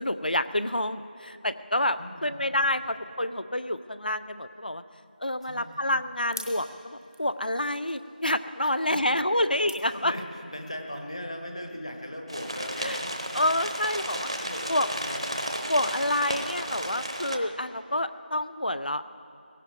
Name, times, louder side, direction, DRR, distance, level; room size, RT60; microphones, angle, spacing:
voice 1, 0.0-4.8 5.2-10.1 12.8-13.0 13.3-14.3 14.7-14.9 15.7-19.1, left 1 dB, 60° left, 13 dB, 0.6 m, -28 dB
voice 2, 2.0-2.6 5.4-5.9 8.6-9.5 9.9-13.3 14.0-15.7, equal, 40° left, 3 dB, 1.3 m, -40 dB
sound 1, 5.0-10.6, equal, 20° left, 1.0 m, -48 dB
sound 2, 12.3-17.4, equal, 35° right, 0.9 m, -33 dB
16.5 x 16.0 x 4.7 m, 2.6 s
figure-of-eight pair, 180°, 5 cm